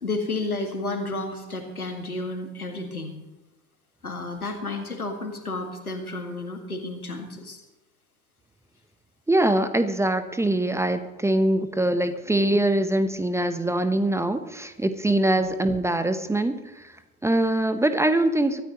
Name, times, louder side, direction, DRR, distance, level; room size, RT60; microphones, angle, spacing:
voice 1, 0.0-3.2 4.0-7.6 15.4-15.5, left 2 dB, 85° left, 5 dB, 2.1 m, -31 dB
voice 2, 9.3-16.9 17.2-18.6, right 1 dB, 5° right, 10 dB, 0.9 m, -23 dB
24.0 x 13.5 x 3.1 m, 1.1 s
figure-of-eight pair, 75°, 43 cm